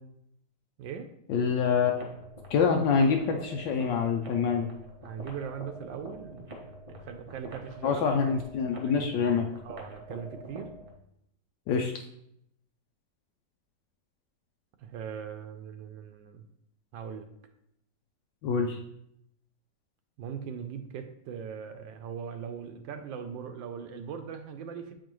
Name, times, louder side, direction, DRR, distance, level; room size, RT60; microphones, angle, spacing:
voice 1, 0.8-1.1 5.0-8.0 8.7-9.0 9.6-10.7 14.8-16.4 16.9-17.3 20.2-24.9, right 7 dB, 85° right, 7 dB, 1.3 m, -40 dB
voice 2, 1.3-1.9 2.5-4.7 7.8-9.5 11.7-11.9 18.4-18.8, left 5 dB, 80° left, 2 dB, 1.2 m, -26 dB
sound 1, 1.9-10.9, equal, 45° right, 0.4 m, -46 dB
7.3 x 4.5 x 3.0 m, 0.76 s
omnidirectional pair, 2.0 m